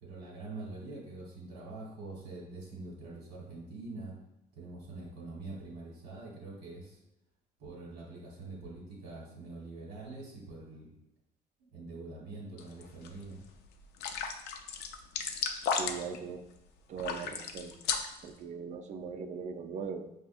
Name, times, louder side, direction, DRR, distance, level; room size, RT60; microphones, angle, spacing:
voice 1, 0.0-4.1 4.6-7.0 7.6-10.9 11.7-13.4, right 2 dB, 85° right, -4 dB, 1.2 m, -44 dB
sound 1, 12.6-13.1 13.4-13.5 14.0-16.2 17.0-18.3, left 6 dB, 75° left, 0.4 m, -34 dB
voice 2, 15.7-16.4 16.9-17.8 18.2-20.1, right 6 dB, 45° right, 8 dB, 0.4 m, -40 dB
5.4 x 2.4 x 2.4 m, 0.89 s
cardioid pair, 110°, 17 cm